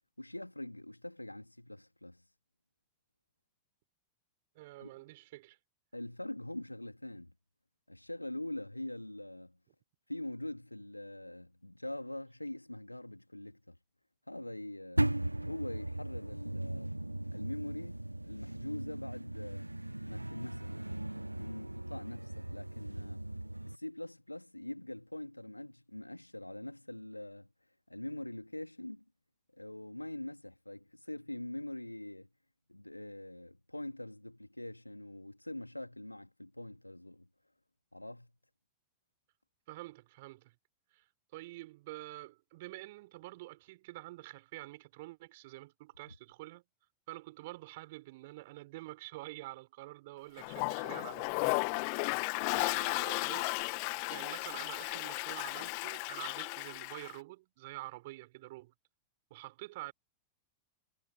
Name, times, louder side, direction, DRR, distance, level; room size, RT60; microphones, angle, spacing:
voice 1, 0.2-2.2 4.8-4.9 5.9-7.3 7.9-9.6 10.1-13.8 14.3-16.9 17.3-19.7 20.1-20.8 21.4-23.2 23.7-27.5 27.9-29.0 29.5-32.3 32.7-37.3 37.9-38.3, left 1 dB, 85° left, 2.5 m, -43 dB
voice 2, 4.6-5.6 39.7-40.5 40.9-41.0 41.3-46.6 47.1-51.6 52.5-58.7 59.3-59.9, right 19 dB, 50° right, 4.1 m, -47 dB
sound 1, 15.0-23.8, right 1 dB, 85° right, 1.0 m, -38 dB
Toilet flush, 50.4-57.1, left 40 dB or more, 45° left, 1.9 m, -35 dB
figure-of-eight pair, 90°, 0 cm